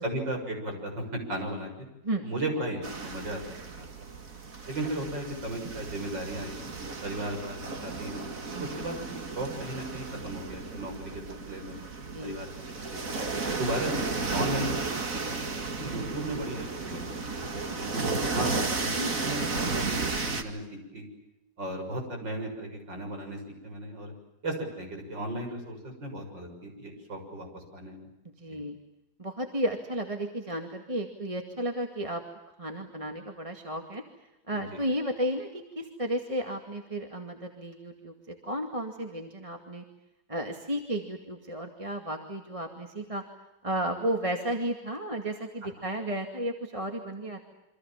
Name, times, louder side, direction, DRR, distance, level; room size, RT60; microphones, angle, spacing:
voice 1, 0.0-1.9 2.2-3.9 4.7-6.6 7.0-8.3 8.6-11.8 12.2-13.1 13.5-15.0 15.4-17.0 17.8-21.0 21.6-24.1 24.4-28.1 28.5-28.6 34.5-34.8, right 1 dB, 75° right, 3 dB, 7.4 m, -36 dB
sound 1, 2.8-20.4, right 4 dB, 45° right, 2.6 m, -34 dB
voice 2, 8.5-8.9 12.1-12.4 17.5-17.8 19.0-19.2 28.4-28.8 29.2-32.2 32.6-34.0 34.5-39.8 40.3-43.2 43.6-47.4, right 1 dB, 20° right, 4 dB, 2.2 m, -33 dB
28.0 x 25.5 x 7.4 m, 0.94 s
omnidirectional pair, 2.0 m